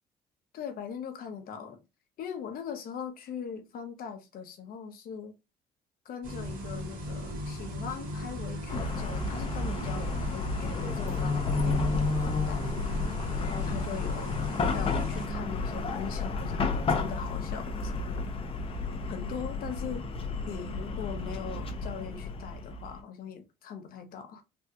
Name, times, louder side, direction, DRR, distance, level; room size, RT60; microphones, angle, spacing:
voice 1, 0.5-1.8 2.2-5.3 6.0-11.9 12.2-12.8 13.4-14.3 14.7-18.3 18.7-18.8 19.0-20.0 20.5-24.4, left 7 dB, 60° left, 0.8 m, -40 dB
sound 1, 6.2-15.3, equal, 55° right, 1.3 m, -37 dB
Chatter / Car passing by / Traffic noise roadway noise, 8.7-23.0, left 3 dB, 35° left, 0.6 m, -31 dB
3.4 x 2.3 x 2.8 m
cardioid pair, 110°, 17 cm